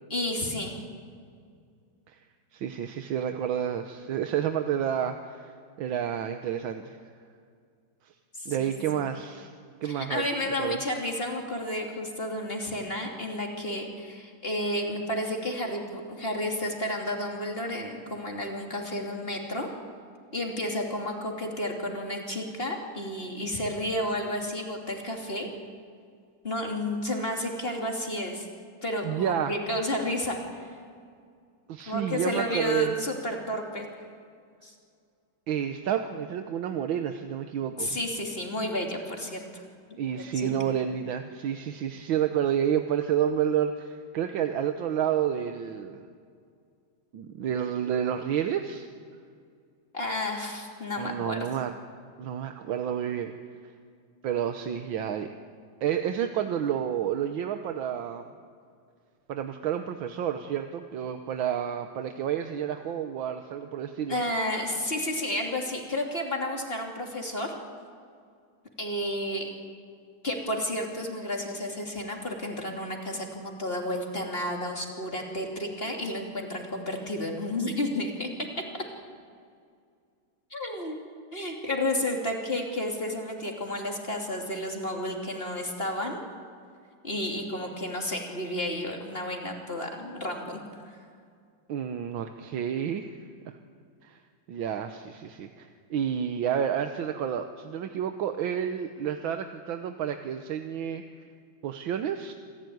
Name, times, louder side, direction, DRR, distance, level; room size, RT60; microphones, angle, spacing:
voice 1, 0.1-0.8 8.4-9.1 9.8-19.7 20.3-25.5 26.4-28.5 28.8-30.7 31.9-33.9 34.6-34.7 37.8-39.6 40.3-40.5 49.9-51.4 64.1-67.5 68.8-69.5 70.2-78.3 80.5-81.0 81.3-86.2 87.0-90.6 90.9-91.0, left 1 dB, 30° left, 1 dB, 3.1 m, -31 dB
voice 2, 2.5-7.1 8.0-8.2 8.5-9.5 9.8-10.2 10.6-10.8 29.0-29.6 31.7-33.0 35.5-38.0 40.0-46.1 47.1-48.9 51.0-51.7 52.2-53.3 53.6-53.7 54.2-55.3 55.8-58.3 59.3-64.2 91.7-93.6 94.0-94.2 94.5-101.0 101.6-102.3, right 9 dB, 80° right, 7 dB, 1.7 m, -30 dB
27.5 x 15.5 x 9.4 m, 2.2 s
omnidirectional pair, 2.2 m